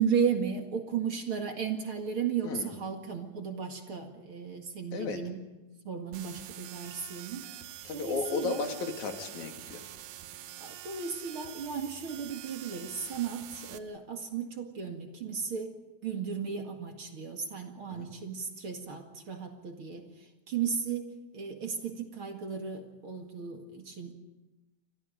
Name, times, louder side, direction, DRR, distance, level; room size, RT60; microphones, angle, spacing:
voice 1, 0.0-5.4 5.8-7.5 7.9-8.6 10.6-24.1, right 7 dB, 45° right, 4 dB, 2.6 m, -35 dB
sound 1, 6.1-13.8, right 12 dB, 80° right, 2.5 m, -46 dB
voice 2, 7.8-9.8 17.9-18.1, left 4 dB, 70° left, 4 dB, 3.7 m, -34 dB
29.0 x 25.0 x 5.2 m, 1.1 s
omnidirectional pair, 3.5 m